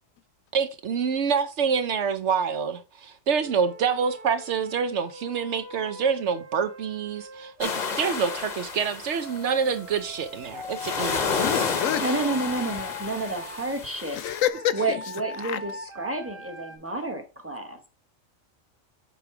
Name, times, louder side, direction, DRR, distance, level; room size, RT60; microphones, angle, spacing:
voice 1, 0.5-11.5, right 6 dB, 65° right, 0.9 m, -27 dB
Wind instrument woodwind instrument, 3.4-8.4 9.1-13.8 14.5-16.8, left 2 dB, 45° right, 1.7 m, -42 dB
sound 1, 7.6-9.8 10.4-14.5, left 5 dB, 40° left, 0.8 m, -31 dB
voice 2, 11.2-12.1 13.1-13.2 14.1-15.0 15.4-15.6, left 11 dB, 80° left, 1.0 m, -28 dB
voice 3, 12.0-14.2 14.7-17.9, right 2 dB, 10° right, 1.1 m, -30 dB
8.1 x 3.1 x 4.8 m
omnidirectional pair, 1.4 m